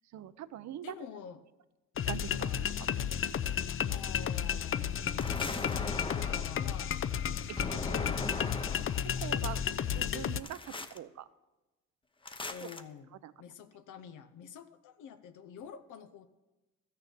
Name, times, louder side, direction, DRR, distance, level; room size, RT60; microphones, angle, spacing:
voice 1, 0.1-0.9 2.1-2.7 7.6-8.3 8.6-8.7 9.2-9.6 10.0-10.6 10.9-11.2 13.2-13.3, right 11 dB, 65° right, 15 dB, 0.7 m, -43 dB
voice 2, 0.8-1.4 2.8-2.9 3.9-5.3 5.6-7.0 12.5-16.3, left 7 dB, 80° left, 8 dB, 0.8 m, -49 dB
sound 1, 2.0-10.4, left 9 dB, 45° left, 0.6 m, -33 dB
sound 2, 5.2-6.7 7.6-9.0 10.4-11.0 12.2-12.8, left 3 dB, 15° left, 0.8 m, -39 dB
13.5 x 6.8 x 6.8 m, 1.1 s
cardioid pair, 90°, 30 cm